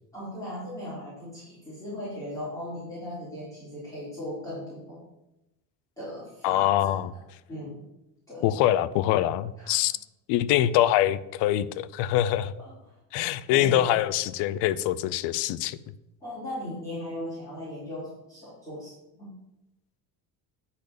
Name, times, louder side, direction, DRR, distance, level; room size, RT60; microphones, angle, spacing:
voice 1, 0.1-5.0 6.0-7.2 7.5-7.8 8.3-8.6 9.6-9.8 12.6-13.0 13.2-13.8 16.2-19.3, left 1 dB, 10° left, -10 dB, 3.7 m, -38 dB
voice 2, 6.4-7.1 8.4-9.9 10.3-12.5 13.1-15.8, left 13 dB, 70° left, 14 dB, 0.7 m, -24 dB
10.0 x 4.2 x 6.8 m, 0.92 s
cardioid pair, 145°, 42 cm